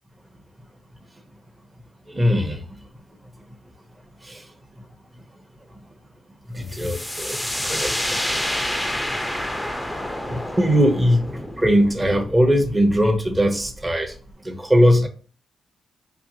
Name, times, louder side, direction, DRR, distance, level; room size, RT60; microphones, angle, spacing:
voice 1, 2.1-2.8 3.3-3.4 4.2-4.5 4.8-4.9 5.1-5.2 6.5-8.2 8.6-8.7 10.3-14.2 14.4-15.1, equal, 15° right, 1.0 m, -20 dB
sound 1, 6.7-14.3, left 1 dB, 5° left, 0.6 m, -29 dB
4.4 x 2.9 x 2.7 m
cardioid pair, 75°, 0 cm